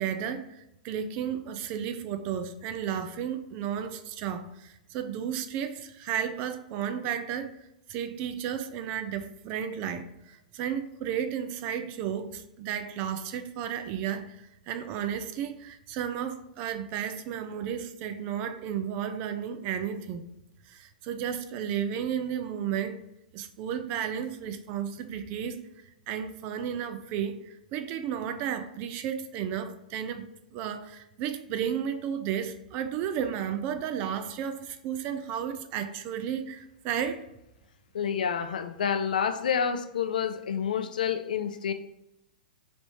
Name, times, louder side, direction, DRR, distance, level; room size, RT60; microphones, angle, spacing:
voice 1, 0.0-7.5 7.9-20.3 20.7-23.0 23.3-25.6 26.1-37.2, right 8 dB, 40° right, 9 dB, 0.4 m, -33 dB
voice 2, 37.9-41.7, left 7 dB, 75° left, 9 dB, 0.4 m, -28 dB
3.4 x 2.6 x 4.3 m, 0.85 s
hypercardioid pair, 115°, 4 cm